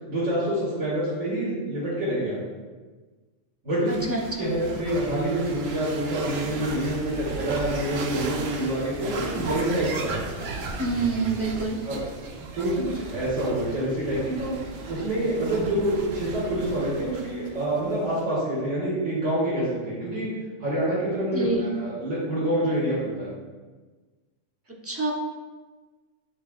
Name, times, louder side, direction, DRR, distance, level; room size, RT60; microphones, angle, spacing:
voice 1, 0.1-2.4 3.6-3.9 4.4-10.1 11.8-12.0 12.5-14.5 14.9-20.3 20.6-23.3, right 1 dB, 85° right, -9 dB, 2.5 m, -27 dB
voice 2, 3.9-4.5 10.8-11.8 21.3-21.7 24.8-25.1, right 3 dB, 15° right, -1 dB, 0.7 m, -27 dB
sound 1, 3.9-18.2, right 3 dB, 55° right, 0.9 m, -36 dB
10.0 x 4.6 x 2.5 m, 1.3 s
omnidirectional pair, 1.4 m